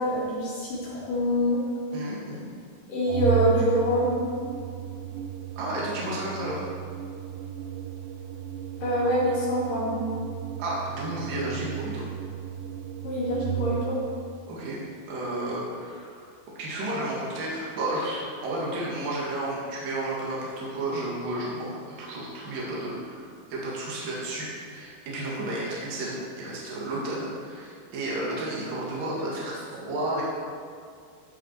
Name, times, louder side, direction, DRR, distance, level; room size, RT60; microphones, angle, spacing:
voice 1, 0.0-1.6 2.9-4.2 8.8-10.0 13.0-14.0, equal, 60° left, -7 dB, 4.3 m, -25 dB
voice 2, 1.9-2.5 5.6-6.6 10.6-12.0 14.5-14.8 15.1-16.3 16.6-21.7 22.0-30.2, right 1 dB, 65° right, -6 dB, 3.6 m, -32 dB
Organ, 3.1-14.1, right 10 dB, 85° right, 1.9 m, -34 dB
15.0 x 6.3 x 4.5 m, 2.2 s
omnidirectional pair, 4.5 m